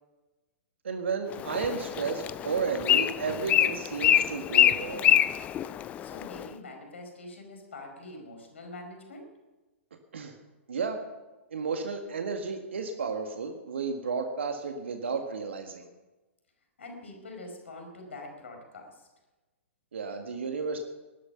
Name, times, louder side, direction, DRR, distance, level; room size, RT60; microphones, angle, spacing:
voice 1, 0.8-5.2 10.1-10.3 10.7-11.0 11.5-15.9 19.9-20.8, right 5 dB, 60° right, 4 dB, 1.7 m, -32 dB
Bird, 1.3-6.5, left 11 dB, 20° left, 0.5 m, -25 dB
voice 2, 6.0-9.3 16.8-19.1, left 2 dB, 65° left, 3 dB, 4.9 m, -44 dB
19.5 x 12.0 x 5.7 m, 1.1 s
figure-of-eight pair, 110°, 7 cm